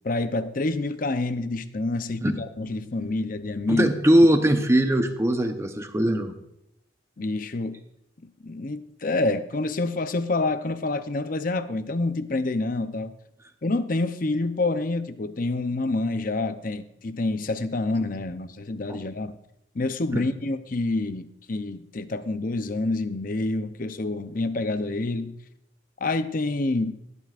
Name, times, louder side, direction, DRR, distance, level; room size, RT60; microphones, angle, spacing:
voice 1, 0.0-3.9 7.2-7.8 8.2-13.1 13.6-19.4 19.7-25.3 26.0-27.0, left 2 dB, 45° left, 0.6 m, -27 dB
voice 2, 3.7-6.3 18.9-19.0 20.1-20.2, right 1 dB, 15° right, 0.8 m, -20 dB
18.5 x 12.5 x 2.5 m
head